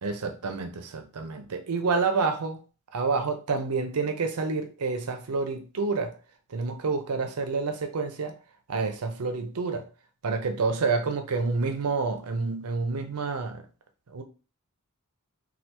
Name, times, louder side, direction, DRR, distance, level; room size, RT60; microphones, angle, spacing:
voice 1, 0.0-2.6 2.9-6.1 6.5-8.3 8.7-9.8 10.2-13.6 14.1-14.2, right 4 dB, 80° right, 0.6 m, -28 dB
3.4 x 2.3 x 2.9 m
head